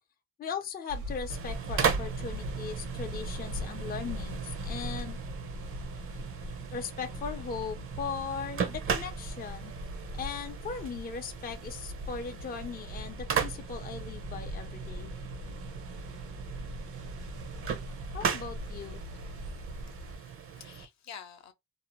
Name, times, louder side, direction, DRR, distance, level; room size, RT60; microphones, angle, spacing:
voice 1, 0.4-5.2 6.7-9.7 10.1-15.1 18.1-19.0, left 6 dB, 30° left, 0.5 m, -38 dB
sound 1, 0.9-20.2, left 1 dB, 75° right, 1.1 m, -42 dB
sound 2, 1.3-20.9, right 7 dB, 45° right, 0.7 m, -37 dB
voice 2, 19.6-21.5, left 7 dB, 65° left, 0.8 m, -50 dB
2.7 x 2.0 x 2.9 m
cardioid pair, 90°, 30 cm